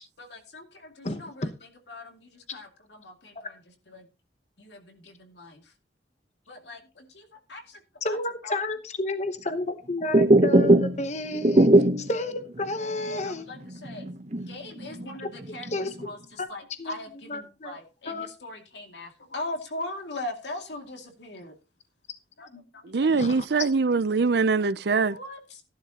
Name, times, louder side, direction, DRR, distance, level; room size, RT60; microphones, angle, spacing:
voice 1, 0.2-3.6 3.9-4.1 4.6-5.7 6.5-7.8 8.1-8.2 8.4-8.6 13.2-14.1 14.5-15.7 16.0-21.5 22.4-23.6 25.1-25.6, left 2 dB, 70° left, 2.4 m, -40 dB
voice 2, 1.0-1.5 8.0-13.5 15.7-16.1 16.8-16.9 17.3-17.8 18.1-18.3 23.1-23.5, left 1 dB, 40° left, 1.0 m, -31 dB
sound 1, 10.0-11.1 11.3-12.2 12.6-12.7 13.0-13.2 13.7-15.1 15.4-16.0, right 1 dB, 40° right, 0.9 m, -19 dB
voice 3, 22.8-25.2, right 4 dB, 65° right, 0.5 m, -23 dB
15.0 x 11.0 x 2.9 m
head